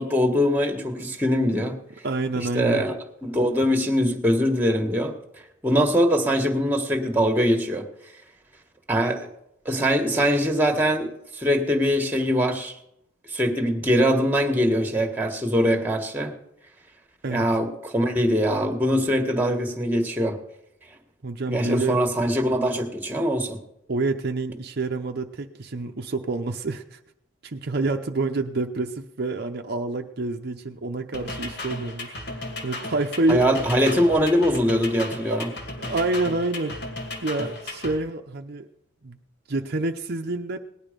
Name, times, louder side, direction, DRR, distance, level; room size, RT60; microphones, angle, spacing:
voice 1, 0.0-1.7 2.4-2.9 3.2-5.1 5.6-7.8 8.9-9.3 9.6-12.7 13.3-16.3 17.3-20.4 21.5-23.6 33.3-35.5, equal, 10° right, 6 dB, 1.6 m, -22 dB
voice 2, 2.0-2.9 17.2-17.5 21.2-22.0 23.9-27.0 27.4-33.6 35.3-35.4 35.8-36.8 37.2-38.7 39.0-39.2 39.5-40.6, right 2 dB, 55° right, 4 dB, 0.7 m, -28 dB
sound 1, 31.1-38.0, left 2 dB, 60° left, 2.4 m, -35 dB
18.5 x 11.0 x 5.2 m, 0.81 s
head